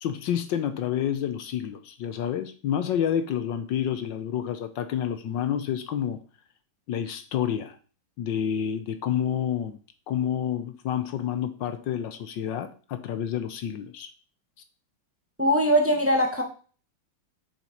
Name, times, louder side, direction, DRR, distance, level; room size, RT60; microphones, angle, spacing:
voice 1, 0.0-6.2 6.9-7.8 8.2-9.8 10.1-14.1, left 9 dB, 70° left, 10 dB, 1.4 m, -29 dB
voice 2, 15.4-16.4, equal, 5° right, 2 dB, 1.4 m, -21 dB
7.5 x 5.9 x 5.4 m, 0.39 s
omnidirectional pair, 2.2 m